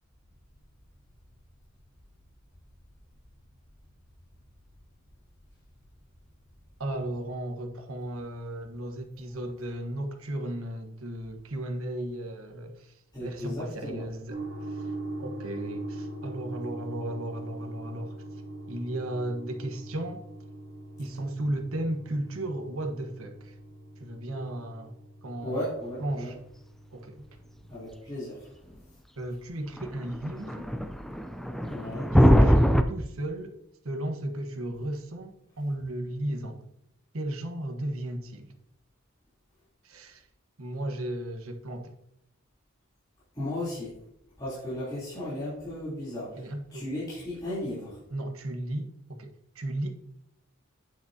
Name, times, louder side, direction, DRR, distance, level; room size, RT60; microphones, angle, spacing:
voice 1, 6.8-14.9 15.2-18.2 18.7-20.2 21.0-23.6 24.0-25.0 25.2-25.6 26.0-26.4 26.9-27.3 29.2-30.7 32.1-33.5 33.8-36.6 37.1-38.5 39.8-40.2 40.6-41.9 46.3-46.9 48.1-49.9, right 1 dB, 90° right, 1.2 m, -35 dB
voice 2, 13.1-14.0 25.4-26.3 27.7-28.6 31.6-32.1 43.3-43.9 44.4-48.0, left 1 dB, 20° left, 3.2 m, -35 dB
sound 1, 14.3-28.0, right 1 dB, 70° right, 2.7 m, -42 dB
sound 2, 29.8-32.8, equal, ahead, 0.4 m, -22 dB
8.9 x 7.8 x 2.8 m
head